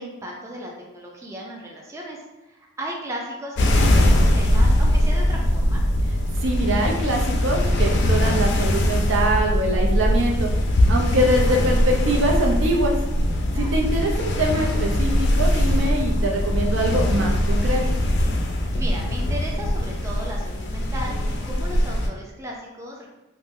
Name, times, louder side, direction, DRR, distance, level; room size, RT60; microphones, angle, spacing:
voice 1, 0.0-5.8 13.5-13.8 18.7-23.1, right 1 dB, 15° right, -2 dB, 0.4 m, -36 dB
sound 1, 3.6-22.1, left 1 dB, 60° left, 0.3 m, -21 dB
voice 2, 6.4-10.5 10.9-13.0 13.6-17.8, right 1 dB, 70° right, 1 dB, 0.5 m, -23 dB
2.6 x 2.0 x 3.5 m, 0.98 s
head